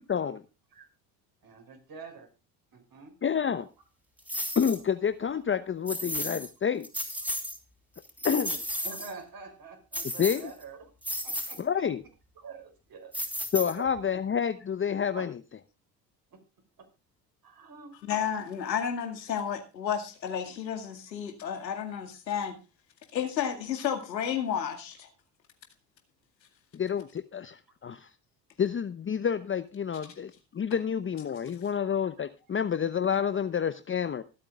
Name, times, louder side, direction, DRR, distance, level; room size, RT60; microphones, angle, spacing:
voice 1, 0.1-0.4 3.2-3.7 4.6-6.9 8.2-8.6 10.2-10.5 11.6-12.0 13.5-15.4 26.7-28.1 28.6-34.2, left 7 dB, 25° left, 0.9 m, -29 dB
voice 2, 1.4-2.3 2.7-3.1 8.8-10.9 11.2-11.6 12.4-13.1 13.8-13.9 15.2-15.3 17.4-17.9, right 4 dB, 45° right, 6.1 m, -45 dB
sound 1, 4.3-4.8 5.9-6.5 6.8-7.6 8.0-9.1 9.9-10.6 11.0-11.6 13.1-14.0, equal, 5° right, 4.2 m, -34 dB
voice 3, 18.0-22.6 23.1-25.1, left 8 dB, 85° left, 2.2 m, -32 dB
25.0 x 8.8 x 2.4 m
hypercardioid pair, 65°, 50 cm